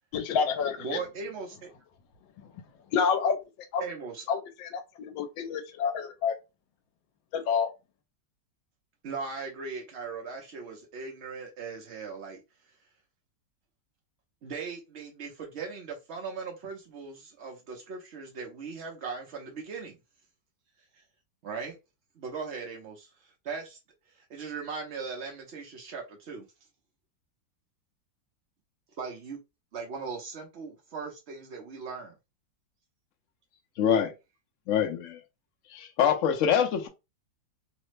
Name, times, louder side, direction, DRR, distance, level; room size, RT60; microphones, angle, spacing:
voice 1, 0.1-1.0 2.9-3.4 3.7-3.8 4.3-6.3 7.3-7.7, left 6 dB, 90° left, 1.3 m, -28 dB
voice 2, 0.8-1.7 3.8-4.2 9.0-12.4 14.4-20.0 21.4-21.8 22.2-23.8 24.1-26.5 29.0-29.4 29.7-32.2, right 5 dB, 90° right, 0.5 m, -39 dB
voice 3, 33.8-34.1 34.7-35.2 35.7-36.9, left 8 dB, 70° left, 0.7 m, -25 dB
3.2 x 2.0 x 3.1 m
omnidirectional pair, 2.0 m